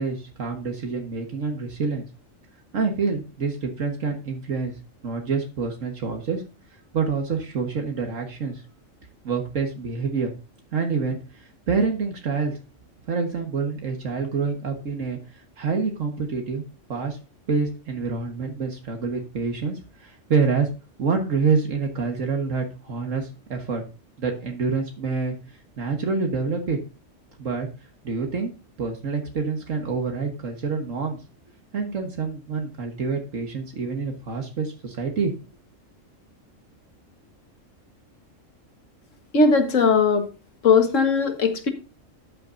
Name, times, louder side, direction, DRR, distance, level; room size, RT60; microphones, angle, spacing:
voice 1, 0.0-2.1 2.7-4.7 5.0-6.4 6.9-8.6 9.2-10.3 10.7-12.6 13.1-15.2 15.6-16.6 16.9-17.2 17.5-20.7 21.0-23.8 24.2-25.3 25.8-26.8 27.4-27.7 28.0-28.5 28.8-31.2 31.7-35.3, right 5 dB, 75° right, 3 dB, 1.8 m, -27 dB
voice 2, 39.3-40.3 40.6-41.7, left 4 dB, 70° left, 7 dB, 1.8 m, -18 dB
12.0 x 8.8 x 2.6 m, 0.31 s
omnidirectional pair, 1.3 m